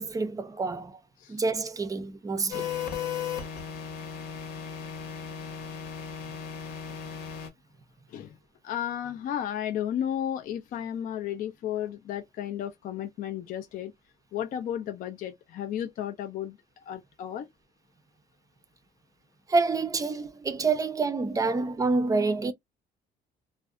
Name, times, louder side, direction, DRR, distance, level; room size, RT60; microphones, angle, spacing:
voice 1, 0.0-1.0 1.3-2.7 19.5-22.5, right 3 dB, 20° right, 0.4 m, -27 dB
sound 1, 2.5-7.5, left 8 dB, 75° left, 1.0 m, -36 dB
voice 2, 8.6-13.9 14.3-16.6 16.9-17.5 21.5-21.6, left 10 dB, 55° left, 0.4 m, -33 dB
2.5 x 2.1 x 2.4 m
cardioid pair, 110°, 17 cm